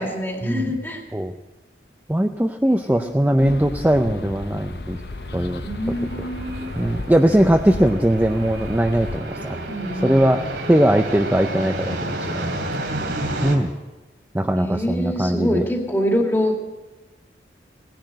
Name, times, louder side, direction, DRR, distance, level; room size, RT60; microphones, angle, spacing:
voice 1, 0.0-1.0 3.0-3.1 3.4-3.5 5.6-6.7 9.7-10.1 14.6-16.6, equal, 10° left, 1 dB, 2.1 m, -25 dB
voice 2, 2.1-5.0 5.3-5.6 6.8-9.6 10.0-10.4 10.7-12.5 13.4-13.7 14.3-15.7, right 1 dB, 10° right, 5 dB, 0.5 m, -20 dB
sound 1, 3.0-13.6, right 1 dB, 90° right, 2.8 m, -32 dB
sound 2, 3.4-9.2, left 2 dB, 65° left, 0.8 m, -34 dB
17.5 x 10.5 x 7.7 m, 1.2 s
head